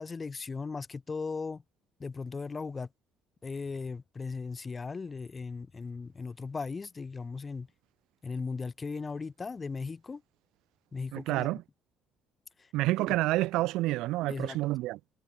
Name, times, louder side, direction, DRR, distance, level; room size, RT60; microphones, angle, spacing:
voice 1, 0.0-1.6 2.0-2.9 3.4-7.7 8.2-10.2 10.9-11.6 12.6-12.7 14.3-14.6, left 4 dB, 20° left, 0.6 m, -37 dB
voice 2, 11.1-11.6 12.7-15.0, right 18 dB, 80° right, 0.4 m, -29 dB
cardioid pair, 135°, 0 cm